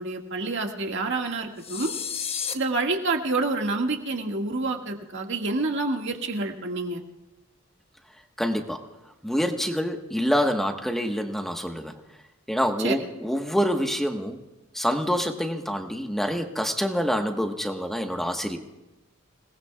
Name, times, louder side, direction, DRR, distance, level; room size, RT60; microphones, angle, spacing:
voice 1, 0.0-1.9 2.5-7.0 12.8-13.0, right 3 dB, 60° right, 2 dB, 2.0 m, -28 dB
sound 1, 1.6-2.5, left 7 dB, 30° left, 1.0 m, -31 dB
voice 2, 8.4-8.8 9.2-12.0 12.5-14.4 14.7-18.6, equal, ahead, 3 dB, 1.3 m, -26 dB
28.0 x 19.0 x 2.4 m, 1.0 s
head